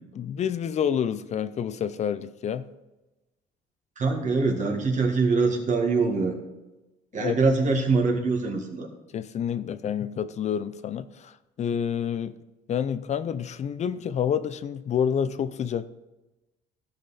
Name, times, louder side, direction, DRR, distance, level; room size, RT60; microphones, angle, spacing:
voice 1, 0.1-2.6 7.2-7.4 9.1-12.4 12.7-15.9, left 8 dB, 45° left, 0.5 m, -28 dB
voice 2, 4.0-6.4 7.1-8.9, right 4 dB, 45° right, 1.8 m, -23 dB
15.0 x 5.8 x 4.2 m
cardioid pair, 110°, 17 cm